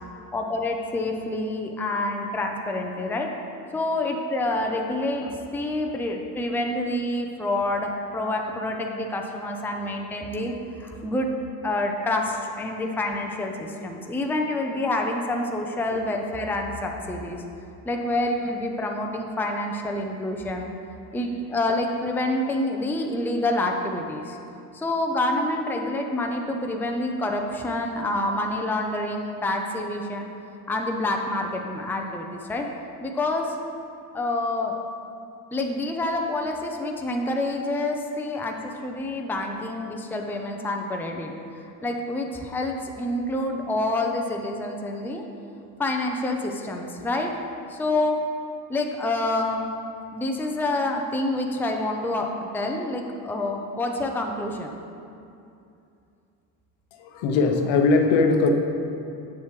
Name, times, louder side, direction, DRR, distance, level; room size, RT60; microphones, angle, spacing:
voice 1, 0.3-3.4 3.7-11.4 11.6-17.4 17.9-20.7 21.1-24.4 24.7-30.3 30.7-32.7 33.0-33.6 34.1-34.8 35.5-45.3 45.8-47.4 47.7-48.3 48.7-49.7 50.1-54.7, left 2 dB, 5° left, 2 dB, 0.6 m, -27 dB
voice 2, 57.0-58.5, left 4 dB, 65° left, 4 dB, 0.9 m, -20 dB
7.6 x 7.1 x 3.2 m, 2.6 s
supercardioid pair, 80°, 50 cm